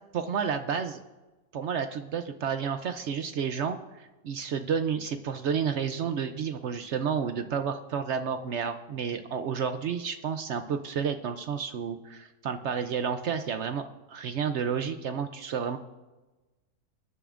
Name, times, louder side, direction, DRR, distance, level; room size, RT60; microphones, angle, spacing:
voice 1, 0.1-1.0 1.5-15.8, right 7 dB, 80° right, 8 dB, 0.6 m, -31 dB
23.5 x 10.0 x 2.5 m, 1.1 s
omnidirectional pair, 1.8 m